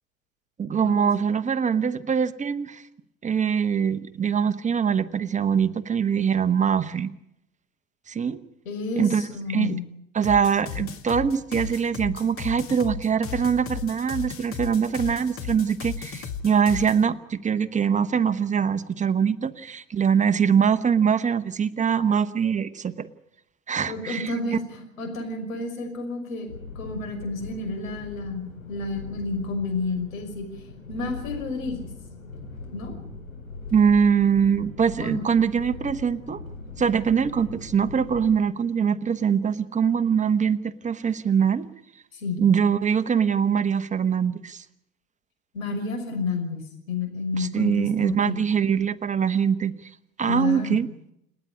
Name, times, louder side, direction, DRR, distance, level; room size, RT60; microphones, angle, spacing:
voice 1, 0.6-2.8 3.2-7.1 8.1-8.4 9.0-9.2 9.5-9.8 10.1-23.1 23.7-24.3 33.7-36.4 36.8-41.7 42.4-44.6 47.3-49.9 50.2-50.9, right 7 dB, 20° right, 11 dB, 1.1 m, -23 dB
voice 2, 8.7-9.9 23.9-26.5 26.7-30.5 30.9-31.9 32.7-32.9 35.0-35.2 42.1-42.4 45.5-48.4 50.3-50.8, left 3 dB, 75° left, 4 dB, 5.9 m, -30 dB
sound 1, 10.2-17.0, left 7 dB, 35° left, 2.0 m, -35 dB
sound 2, 26.5-38.3, left 4 dB, 90° left, 4.9 m, -40 dB
29.0 x 10.0 x 9.8 m, 0.80 s
figure-of-eight pair, 80°, 41 cm